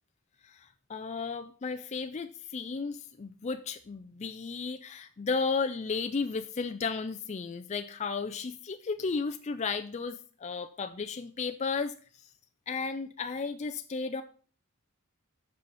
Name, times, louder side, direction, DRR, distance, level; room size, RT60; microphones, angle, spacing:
voice 1, 0.4-12.3 12.7-14.2, left 4 dB, 30° left, 8 dB, 0.4 m, -34 dB
7.9 x 5.6 x 6.6 m, 0.42 s
head